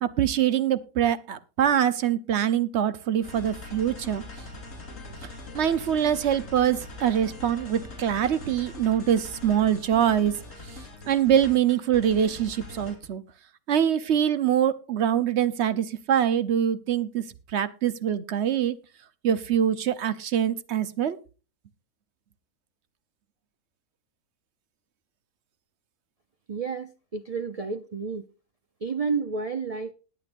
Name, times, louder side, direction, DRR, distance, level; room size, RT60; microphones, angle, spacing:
voice 1, 0.0-4.2 5.5-10.3 11.1-13.2 13.7-17.2 17.5-18.8 19.2-21.2, right 9 dB, 55° right, 0.9 m, -24 dB
sound 1, 3.2-13.1, left 2 dB, 55° left, 3.5 m, -42 dB
voice 2, 26.5-28.3 28.8-29.9, right 5 dB, 80° right, 0.3 m, -30 dB
20.5 x 8.3 x 2.6 m
omnidirectional pair, 1.6 m